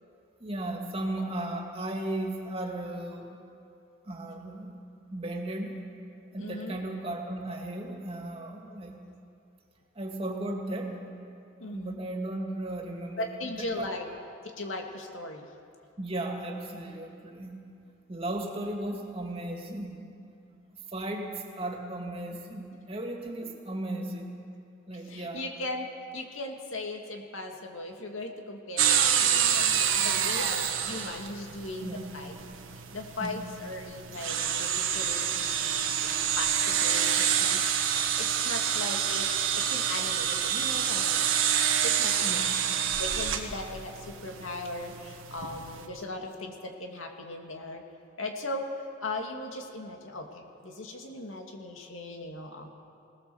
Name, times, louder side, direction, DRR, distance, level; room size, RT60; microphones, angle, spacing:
voice 1, 0.4-3.4 4.0-4.7 5.1-5.8 6.3-9.0 10.0-11.0 11.6-13.9 16.0-17.7 18.1-20.1 20.7-24.3 24.9-25.6 29.9-30.4 31.8-32.1 33.2-33.5 42.2-42.6, right 1 dB, 30° right, 1 dB, 2.4 m, -36 dB
voice 2, 6.4-6.8 11.6-12.0 13.2-14.1 14.4-15.5 25.1-32.4 32.7-37.9 38.2-39.3 39.5-42.4 43.0-47.8 48.2-52.7, left 2 dB, 90° left, 2 dB, 2.4 m, -38 dB
sound 1, 28.8-45.9, right 9 dB, 90° right, 1.6 m, -28 dB
21.5 x 18.5 x 7.1 m, 2.5 s
head